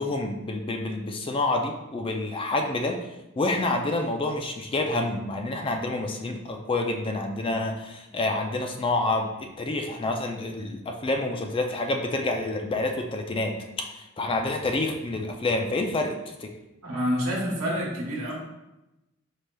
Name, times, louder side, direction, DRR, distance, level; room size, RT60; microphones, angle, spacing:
voice 1, 0.0-3.0 3.4-16.5, left 2 dB, 25° left, 3 dB, 0.4 m, -28 dB
voice 2, 16.8-18.3, equal, 90° right, -4 dB, 1.1 m, -27 dB
4.8 x 4.1 x 2.2 m, 0.96 s
head